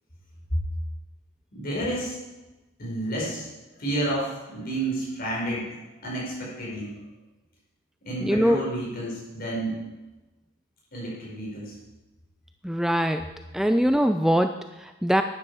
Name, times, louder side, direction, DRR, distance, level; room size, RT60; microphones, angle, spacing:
voice 1, 1.5-2.2 2.8-3.5 3.8-5.7 6.0-6.9 8.0-9.8 10.9-11.7, right 1 dB, 45° left, -4 dB, 5.4 m, -30 dB
voice 2, 8.2-8.6 12.6-15.2, equal, ahead, 8 dB, 0.3 m, -23 dB
12.5 x 10.0 x 4.9 m, 1.1 s
head